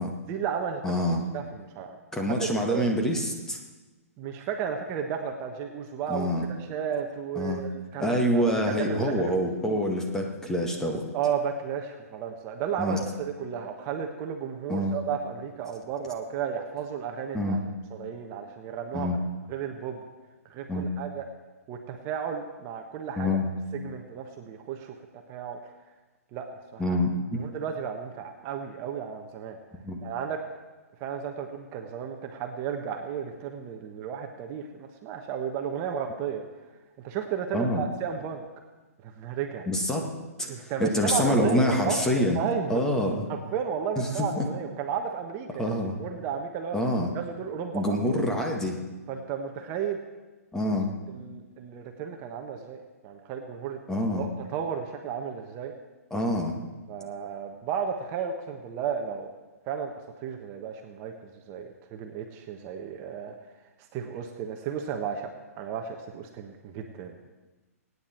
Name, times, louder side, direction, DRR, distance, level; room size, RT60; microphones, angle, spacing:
voice 1, 0.3-0.8 1.3-2.0 2.3-2.9 4.2-6.3 6.6-9.8 11.1-17.6 17.9-19.2 19.5-20.0 20.5-21.3 21.7-23.4 23.7-24.9 25.3-25.7 26.3-27.0 27.3-29.6 30.0-30.4 31.0-36.4 37.0-38.4 39.0-39.7 40.5-45.7 46.0-46.8 47.1-48.2 49.1-50.0 50.6-50.7 51.1-52.8 53.0-53.8 54.2-55.7 56.9-59.3 59.7-59.9 60.2-63.3 63.9-67.3, right 7 dB, 30° right, 4 dB, 1.3 m, -33 dB
voice 2, 0.8-1.2 2.1-3.6 6.1-6.5 7.4-7.6 8.0-11.0 12.8-13.0 14.7-14.9 17.3-17.6 18.9-19.2 20.7-20.9 23.2-23.5 26.8-27.1 29.8-30.0 37.5-37.8 39.7-40.1 40.4-42.4 42.7-43.3 44.0-44.5 45.6-46.0 46.7-47.1 47.7-48.8 50.5-50.9 53.9-54.3 56.1-56.6, left 1 dB, 5° left, 1 dB, 2.0 m, -26 dB
23.5 x 9.8 x 4.5 m, 1.2 s
hypercardioid pair, 130°, 8 cm